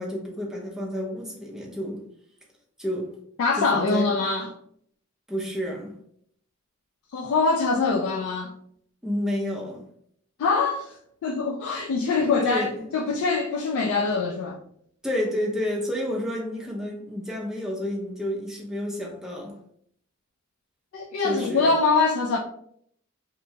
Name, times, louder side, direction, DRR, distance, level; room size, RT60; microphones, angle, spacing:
voice 1, 0.0-2.0 2.8-3.1 3.6-4.1 5.3-5.9 9.0-9.8 12.3-13.2 15.0-19.6 21.2-21.7, left 1 dB, ahead, 0.5 m, -30 dB
voice 2, 3.4-4.5 7.1-8.5 10.4-14.6 20.9-22.4, left 4 dB, 75° left, 0.3 m, -24 dB
2.8 x 2.2 x 2.6 m
head